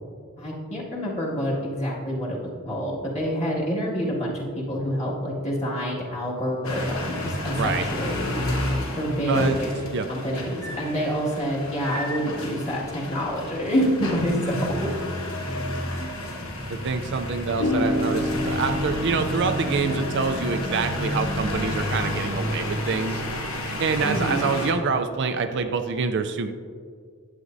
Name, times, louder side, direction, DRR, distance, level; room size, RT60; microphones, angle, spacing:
voice 1, 0.4-2.4 2.6-8.4 9.0-9.7 10.1-15.0 24.0-24.5, equal, 30° left, -5 dB, 1.8 m, -27 dB
sound 1, 6.6-24.7, left 1 dB, 70° left, 1.2 m, -30 dB
voice 2, 16.7-23.2 23.8-26.5, right 5 dB, 55° right, 8 dB, 0.4 m, -26 dB
sound 2, 17.6-24.0, left 1 dB, 85° left, 0.7 m, -31 dB
11.0 x 8.3 x 2.6 m, 2.1 s
head